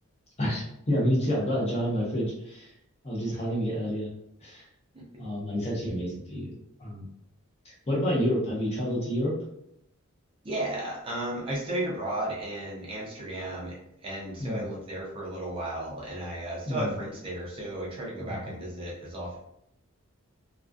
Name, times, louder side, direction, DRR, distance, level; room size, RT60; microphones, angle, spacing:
voice 1, 0.4-2.7 3.0-4.1 4.4-4.6 5.2-6.5 6.8-7.1 7.6-9.3 14.4-14.7 16.7-16.9 18.2-18.4, equal, 30° left, -4 dB, 0.8 m, -29 dB
voice 2, 4.9-5.3 10.4-19.4, right 1 dB, 25° right, -4 dB, 0.5 m, -34 dB
2.3 x 2.3 x 2.4 m, 0.78 s
head